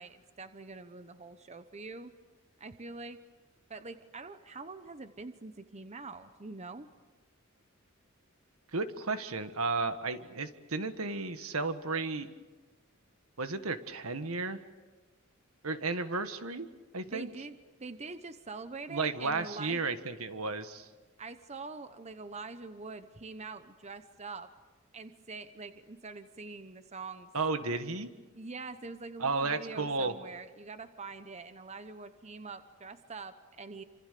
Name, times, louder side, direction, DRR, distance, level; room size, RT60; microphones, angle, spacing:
voice 1, 0.0-2.1 2.6-3.2 3.7-6.9 17.1-19.8 21.2-24.5 24.9-27.3 28.4-33.8, right 3 dB, 30° right, 10 dB, 1.0 m, -44 dB
voice 2, 8.7-12.3 13.4-14.6 15.6-16.7 16.9-17.3 18.9-20.9 27.3-28.1 29.2-30.1, right 3 dB, 80° right, 9 dB, 1.6 m, -33 dB
27.5 x 26.5 x 6.8 m, 1.3 s
head